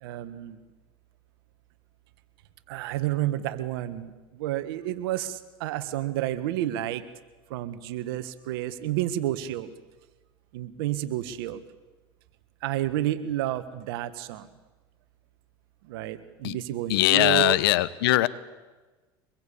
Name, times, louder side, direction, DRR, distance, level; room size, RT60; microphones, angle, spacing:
voice 1, 0.0-0.6 2.7-7.0 7.5-9.7 10.5-11.6 12.6-14.5 15.9-17.6, right 13 dB, 80° right, 12 dB, 1.6 m, -30 dB
voice 2, 16.9-18.3, left 17 dB, 85° left, 17 dB, 1.1 m, -21 dB
24.5 x 21.5 x 8.6 m, 1.2 s
supercardioid pair, 90°, 12 cm